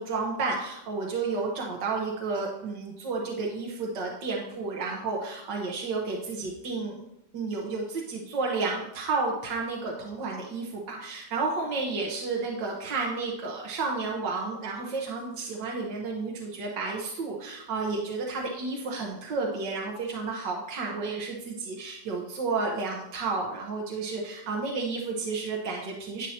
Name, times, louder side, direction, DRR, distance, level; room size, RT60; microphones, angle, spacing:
voice 1, 0.0-7.0 7.3-26.3, right 4 dB, 80° right, -1 dB, 1.8 m, -31 dB
10.5 x 8.8 x 2.9 m, 0.84 s
omnidirectional pair, 1.9 m